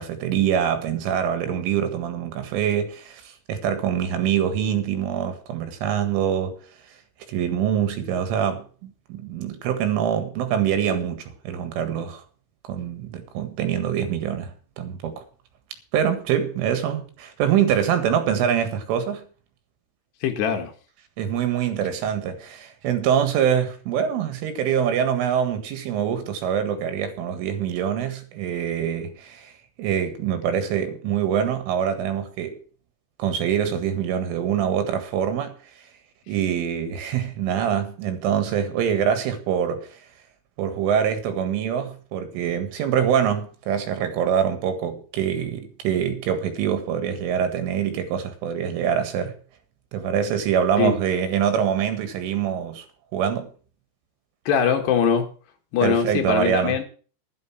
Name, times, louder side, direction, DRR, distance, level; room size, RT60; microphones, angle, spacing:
voice 1, 0.0-6.6 7.3-12.2 12.7-15.2 15.9-19.2 21.2-29.5 29.8-32.6 33.2-35.5 36.3-39.9 40.6-49.4 49.9-52.9 53.1-53.5 55.8-56.8, right 8 dB, 85° right, 4.3 m, -24 dB
voice 2, 20.2-20.7 50.8-51.0 54.5-55.3 55.7-56.8, left 7 dB, 65° left, 3.5 m, -22 dB
11.5 x 11.0 x 6.0 m
omnidirectional pair, 5.5 m